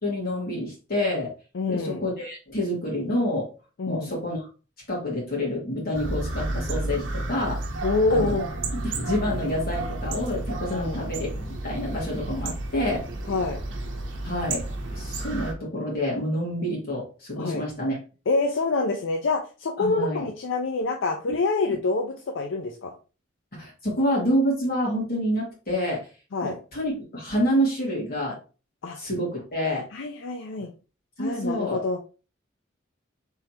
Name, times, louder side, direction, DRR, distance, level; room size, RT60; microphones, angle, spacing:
voice 1, 0.0-1.3 1.7-3.5 3.9-4.5 4.9-7.6 8.1-8.4 8.7-11.3 11.6-13.1 14.2-14.6 14.9-18.0 19.8-20.2 23.5-26.1 26.4-28.4 29.0-29.9 31.2-31.8, equal, 50° left, -3 dB, 2.0 m, -28 dB
voice 2, 1.5-2.0 3.8-4.1 7.8-8.5 10.7-11.0 13.3-13.6 17.4-17.6 18.3-22.9 26.3-26.6 28.8-29.0 29.9-30.7 31.2-32.0, left 3 dB, 80° left, 3 dB, 0.5 m, -26 dB
sound 1, 5.9-15.5, right 2 dB, 80° right, 0.8 m, -31 dB
3.7 x 3.3 x 2.9 m, 0.34 s
head